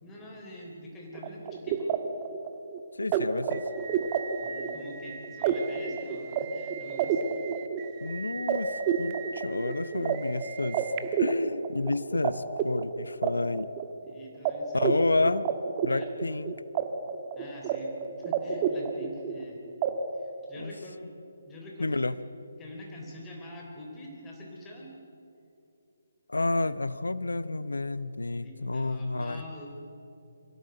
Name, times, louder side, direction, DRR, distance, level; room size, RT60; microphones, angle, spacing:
voice 1, 0.0-1.9 4.4-7.2 14.0-15.0 15.9-16.1 17.4-19.6 20.2-21.1 21.5-22.2 22.6-24.9 28.4-29.7, equal, 15° left, -1 dB, 3.5 m, -45 dB
sound 1, 1.2-12.3 12.6-14.1 14.5-14.6 14.8-16.8 17.1-17.8 18.0-19.4 19.8-19.9, right 8 dB, 30° right, 1.4 m, -30 dB
voice 2, 3.0-3.6 8.0-8.7 9.0-10.8 11.2-13.7 14.7-15.5 15.8-16.5 20.6-20.7 21.8-22.2 26.3-29.4, left 2 dB, 85° left, 16 dB, 0.7 m, -30 dB
23.0 x 15.5 x 7.8 m, 2.7 s
figure-of-eight pair, 145°, 0 cm